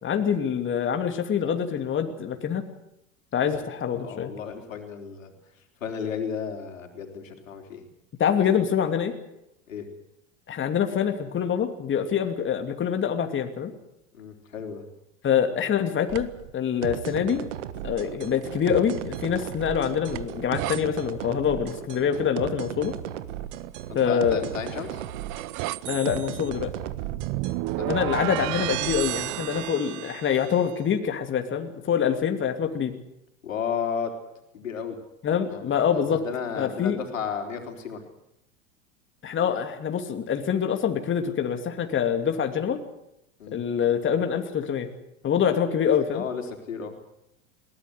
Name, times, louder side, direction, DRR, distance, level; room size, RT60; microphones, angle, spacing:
voice 1, 0.0-2.6 3.3-4.3 8.2-9.1 10.5-13.7 15.2-17.5 17.8-23.0 23.9-24.4 25.9-26.7 27.9-32.9 35.2-36.3 36.6-37.0 39.2-42.8 43.5-44.9 45.2-46.2, left 8 dB, 30° left, 6 dB, 2.7 m, -25 dB
voice 2, 3.9-5.3 5.8-7.9 8.4-8.5 9.7-9.9 14.1-14.8 23.9-25.0 27.4-27.9 33.4-34.1 34.5-35.0 35.5-35.7 35.9-38.0 43.4-43.6 46.1-47.0, left 7 dB, 85° left, 4 dB, 4.1 m, -33 dB
sound 1, 16.1-16.5 18.4-20.8 24.3-30.7, right 19 dB, 50° right, 0.9 m, -33 dB
sound 2, 16.8-29.7, right 12 dB, 70° right, 1.5 m, -36 dB
21.5 x 18.0 x 8.0 m, 0.85 s
hypercardioid pair, 90°, 38 cm